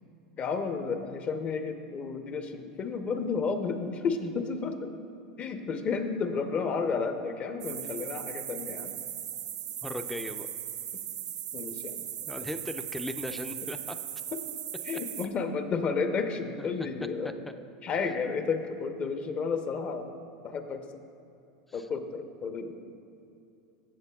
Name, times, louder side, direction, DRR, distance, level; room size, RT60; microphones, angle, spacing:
voice 1, 0.4-4.9 5.4-8.9 11.5-12.0 14.3-14.4 14.9-17.3 17.8-20.1 20.4-20.8 21.7-22.8, left 5 dB, 35° left, 7 dB, 0.7 m, -32 dB
sound 1, 7.6-15.3, right 10 dB, 85° right, 0.4 m, -38 dB
voice 2, 9.8-10.5 12.3-14.0 16.6-16.7 17.2-17.5 21.7-21.9, left 1 dB, 5° left, 8 dB, 0.4 m, -38 dB
15.0 x 6.8 x 2.3 m, 2.7 s
hypercardioid pair, 100°, 4 cm